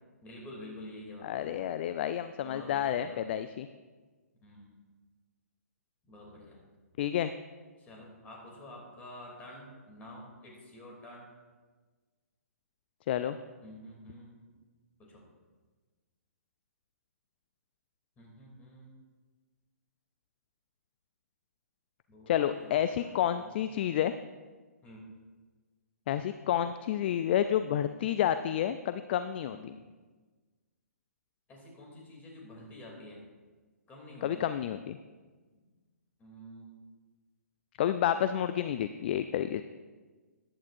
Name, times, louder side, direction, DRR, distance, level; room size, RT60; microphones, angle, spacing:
voice 1, 0.2-1.8 2.4-3.2 4.4-4.7 6.0-6.6 7.8-11.3 13.6-14.5 15.0-15.2 18.2-18.9 22.1-23.9 24.8-25.0 29.5-29.7 31.5-33.2 33.9-34.4 36.2-36.8, left 1 dB, 20° left, -2 dB, 3.0 m, -49 dB
voice 2, 1.2-3.7 7.0-7.3 13.1-13.4 22.3-24.1 26.1-29.7 34.2-35.0 37.8-39.6, left 10 dB, 40° left, 11 dB, 0.4 m, -30 dB
14.0 x 10.5 x 2.6 m, 1.4 s
figure-of-eight pair, 130°, 9 cm